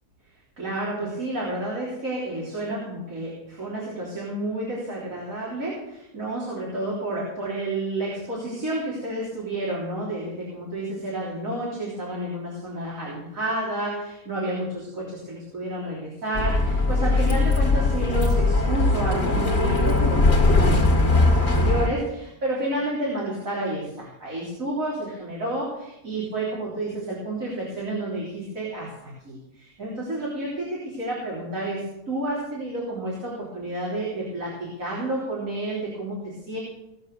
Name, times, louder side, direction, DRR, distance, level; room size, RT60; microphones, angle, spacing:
voice 1, 0.6-36.6, right 1 dB, 75° right, -6 dB, 4.1 m, -30 dB
Bus, 16.4-21.9, left 2 dB, 50° left, 1.9 m, -20 dB
19.0 x 6.8 x 6.7 m, 0.87 s
omnidirectional pair, 1.4 m